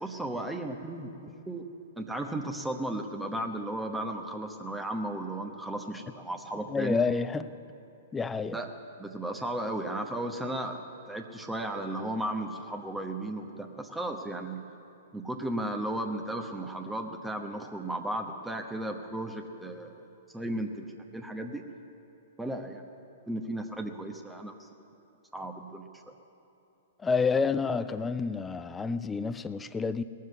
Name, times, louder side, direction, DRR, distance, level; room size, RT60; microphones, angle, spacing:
voice 1, 0.0-1.6 2.0-7.0 8.5-8.7 9.0-10.8 11.1-14.6 15.1-20.1 20.3-21.6 22.4-22.9 23.3-24.7 25.3-25.8, right 1 dB, 5° right, 3 dB, 0.9 m, -35 dB
voice 2, 6.7-7.5 8.1-8.6 27.0-30.0, left 5 dB, 15° left, 14 dB, 0.5 m, -29 dB
19.0 x 7.5 x 9.6 m, 2.8 s
hypercardioid pair, 115°, 0 cm